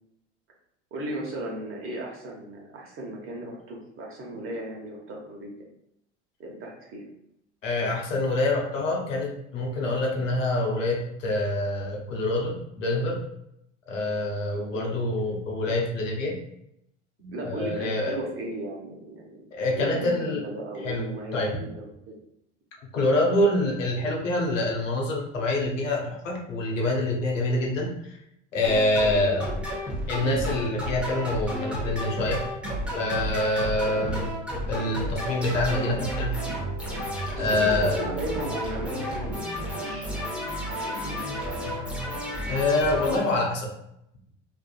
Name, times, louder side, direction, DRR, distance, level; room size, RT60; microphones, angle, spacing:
voice 1, 0.9-5.5 6.4-7.1 14.7-14.9 17.3-22.1 29.1-29.3 34.0-34.1 37.3-40.3 40.7-41.7, right 1 dB, 35° right, -1 dB, 0.9 m, -36 dB
voice 2, 7.6-13.2 13.9-16.4 17.2-18.2 19.5-20.5 20.8-21.1 21.3-21.6 22.9-28.2 28.5-29.6 30.1-32.4 32.9-34.3 34.7-36.3 37.4-38.0 42.5-43.7, left 2 dB, 90° left, -1 dB, 0.7 m, -26 dB
sound 1, 28.6-43.2, equal, 5° right, 0.9 m, -32 dB
2.6 x 2.4 x 2.3 m, 0.78 s
hypercardioid pair, 85°, 37 cm